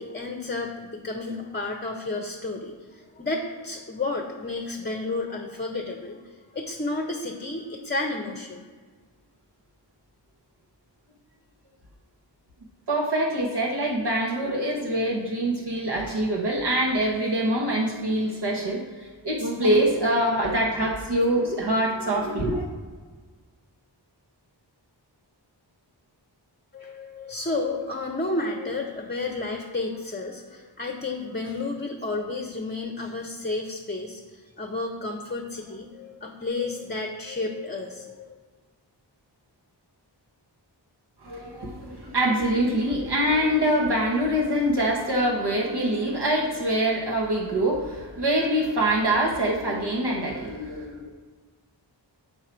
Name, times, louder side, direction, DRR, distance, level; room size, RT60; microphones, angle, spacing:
voice 1, 0.0-8.7 26.7-38.4, left 2 dB, 25° left, 3 dB, 0.7 m, -31 dB
voice 2, 12.9-22.7 41.2-51.1, right 1 dB, 65° right, -2 dB, 1.1 m, -24 dB
6.5 x 4.5 x 4.4 m, 1.5 s
wide cardioid pair, 55°, 44 cm